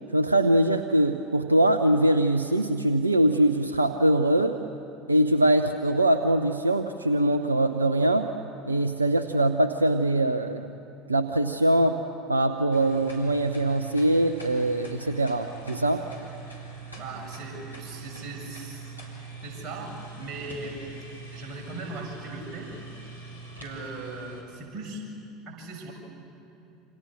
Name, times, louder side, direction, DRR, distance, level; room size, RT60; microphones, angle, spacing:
voice 1, 0.1-4.6 5.1-8.3 8.7-10.7 11.1-12.0 12.3-16.0, right 1 dB, 85° right, 9 dB, 0.7 m, -22 dB
sound 1, 12.7-24.4, right 4 dB, 85° left, 3.9 m, -42 dB
voice 2, 17.0-19.0 19.4-21.0 21.3-22.7 23.6-25.0 25.5-25.9, right 2 dB, 35° right, -1 dB, 7.3 m, -39 dB
28.5 x 26.5 x 6.6 m, 2.7 s
figure-of-eight pair, 70°, 0 cm